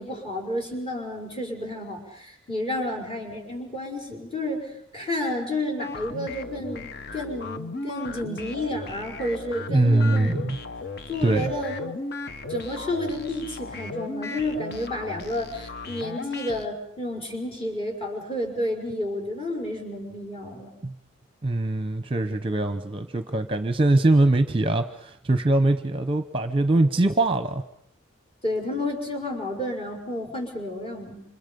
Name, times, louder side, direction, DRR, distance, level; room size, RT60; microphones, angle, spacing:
voice 1, 0.0-10.5 11.1-12.1 12.5-20.7 28.4-31.2, left 1 dB, 30° left, 1 dB, 5.3 m, -31 dB
sound 1, 5.8-16.7, left 2 dB, 50° left, 1.2 m, -36 dB
voice 2, 9.7-10.6 11.2-11.5 20.8-20.9 21.4-27.6, right 2 dB, 25° right, 10 dB, 0.9 m, -22 dB
29.5 x 26.5 x 5.4 m, 0.72 s
head